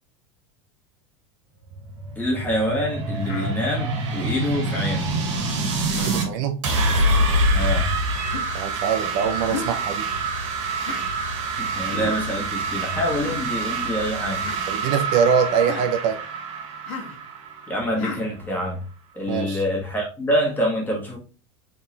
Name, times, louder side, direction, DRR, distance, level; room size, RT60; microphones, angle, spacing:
sound 1, 1.6-6.3 6.6-18.2, right 2 dB, 85° right, 1.8 m, -26 dB
voice 1, 2.1-5.1 7.5-7.9 11.4-14.4 17.7-18.8 19.1-21.2, equal, 10° left, 1.4 m, -26 dB
Human voice, 3.2-3.5 4.6-4.9 5.9-6.2 7.0-7.3 8.3-8.6 9.5-9.8 10.8-11.1 11.9-12.2 13.0-13.4 14.3-14.6 15.6-15.9 16.9-17.2 18.0-18.2, left 4 dB, 80° left, 1.3 m, -34 dB
voice 2, 6.0-6.6 8.5-10.1 14.7-16.2 19.3-19.6, right 7 dB, 50° right, 0.5 m, -23 dB
3.8 x 3.7 x 2.9 m
supercardioid pair, 140°, 16 cm